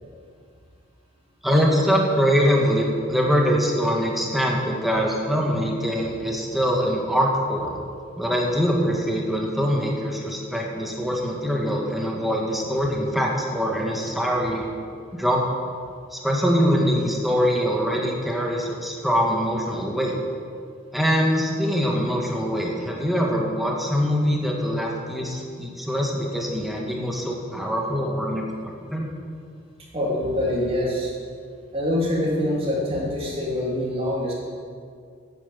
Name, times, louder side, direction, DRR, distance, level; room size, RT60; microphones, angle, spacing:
voice 1, 1.4-7.7 8.2-14.7 15.1-15.6 16.1-20.1 20.9-29.1, equal, ahead, -1 dB, 1.6 m, -23 dB
voice 2, 16.6-17.0 29.9-31.1 31.7-34.3, left 1 dB, 30° right, -5 dB, 3.1 m, -25 dB
9.4 x 9.1 x 7.3 m, 2.2 s
head